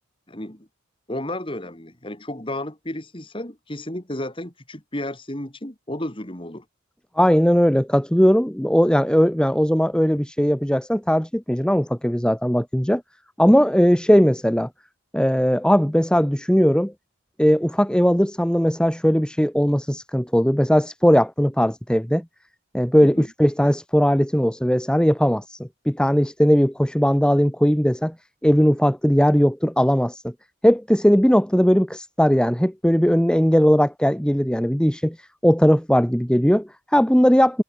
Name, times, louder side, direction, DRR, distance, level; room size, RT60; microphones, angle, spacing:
voice 1, 0.3-0.7 1.1-6.6 23.0-23.3, left 1 dB, 25° left, 2.6 m, -32 dB
voice 2, 7.2-13.0 13.4-14.7 15.1-16.9 17.4-22.2 22.7-28.1 28.4-30.3 30.6-37.6, equal, 5° left, 1.1 m, -19 dB
head